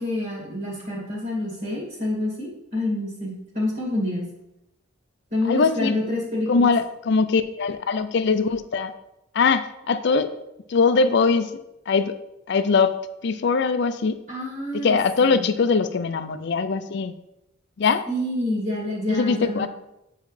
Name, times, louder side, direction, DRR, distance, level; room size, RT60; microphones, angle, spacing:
voice 1, 0.0-4.3 5.3-6.7 14.3-15.4 18.1-19.7, left 1 dB, 40° right, -5 dB, 2.2 m, -28 dB
voice 2, 5.5-5.9 6.5-8.9 9.3-10.3 10.7-11.5 11.9-12.2 12.5-14.2 14.7-17.2 17.8-18.1 19.1-19.7, left 4 dB, 55° left, 11 dB, 0.4 m, -21 dB
8.3 x 4.7 x 3.3 m, 0.87 s
head